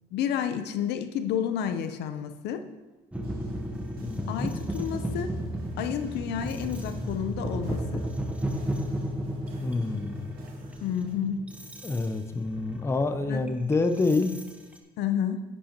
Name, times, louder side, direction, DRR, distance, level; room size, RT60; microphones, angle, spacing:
voice 1, 0.1-2.6 4.3-5.3 5.8-8.1 10.8-11.4 13.3-13.5 15.0-15.4, left 9 dB, 80° left, 9 dB, 0.7 m, -30 dB
sound 1, 3.1-14.8, equal, 10° right, 0.9 m, -34 dB
sound 2, 3.2-11.2, right 3 dB, 60° right, 2.1 m, -54 dB
voice 2, 4.0-4.5 9.6-10.4 11.8-14.4, left 3 dB, 15° left, 8 dB, 0.5 m, -27 dB
10.0 x 8.5 x 2.9 m, 1.2 s
cardioid pair, 110°, 17 cm